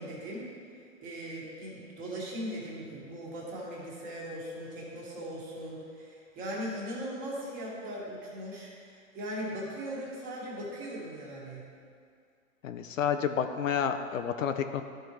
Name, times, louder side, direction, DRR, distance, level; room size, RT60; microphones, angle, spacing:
voice 1, 0.0-11.7, equal, 20° right, -5 dB, 1.6 m, -39 dB
voice 2, 12.6-14.8, left 8 dB, 65° left, 8 dB, 0.6 m, -30 dB
12.5 x 4.4 x 3.2 m, 2.2 s
hypercardioid pair, 150°, 42 cm